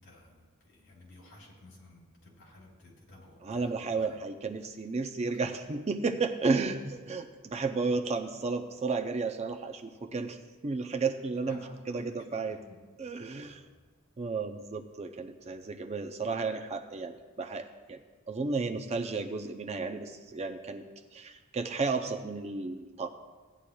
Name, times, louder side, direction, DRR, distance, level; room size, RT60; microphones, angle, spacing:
voice 1, 0.0-4.2 11.4-12.1 12.7-12.8 13.4-13.6, left 1 dB, 55° left, -3 dB, 3.7 m, -53 dB
voice 2, 3.4-10.4 10.6-12.6 13.0-13.6 14.2-18.0 18.3-20.8 21.1-23.1, right 4 dB, 30° right, 6 dB, 0.4 m, -33 dB
17.0 x 9.8 x 2.3 m, 1.4 s
head